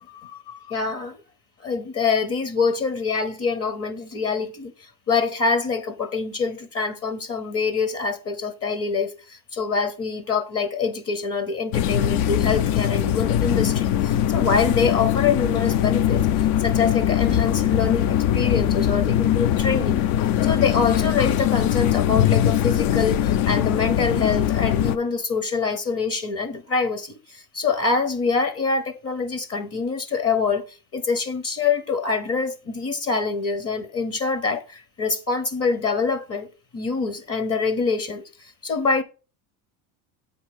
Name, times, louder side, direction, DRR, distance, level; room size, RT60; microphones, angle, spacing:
voice 1, 0.1-1.2 1.6-20.0 20.4-36.5 36.7-39.0, left 5 dB, 30° left, 0.8 m, -25 dB
swimming pool under the tank flows of water, 11.7-25.0, left 11 dB, 50° left, 0.5 m, -21 dB
8.0 x 3.6 x 5.0 m
supercardioid pair, 110°, 47 cm